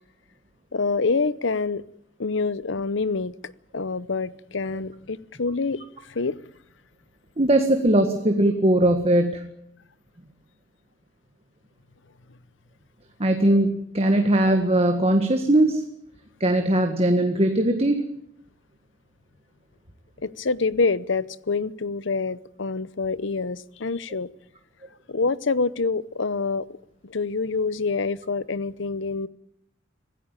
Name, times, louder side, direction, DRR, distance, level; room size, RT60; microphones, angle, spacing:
voice 1, 0.7-1.8 2.2-3.3 3.7-6.4 20.2-24.3 25.1-26.7 27.0-29.3, left 4 dB, 70° left, 18 dB, 0.8 m, -26 dB
voice 2, 7.4-9.4 13.2-15.8 16.4-18.0, right 1 dB, 30° right, 5 dB, 1.7 m, -20 dB
26.0 x 16.5 x 9.0 m, 0.75 s
head